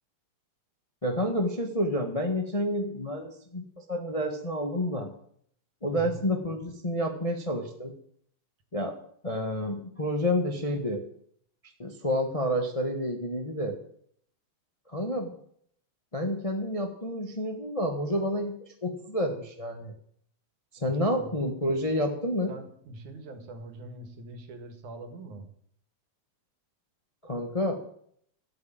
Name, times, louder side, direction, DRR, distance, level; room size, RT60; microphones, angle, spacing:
voice 1, 1.0-5.1 5.8-7.9 8.7-9.0 9.2-11.0 11.8-13.7 14.9-15.3 16.1-19.9 20.7-22.5 27.2-27.8, equal, 40° left, 3 dB, 0.4 m, -29 dB
voice 2, 5.9-6.3 20.8-21.4 22.5-25.5, right 2 dB, 80° right, 7 dB, 3.2 m, -43 dB
13.0 x 8.7 x 8.8 m, 0.66 s
omnidirectional pair, 3.4 m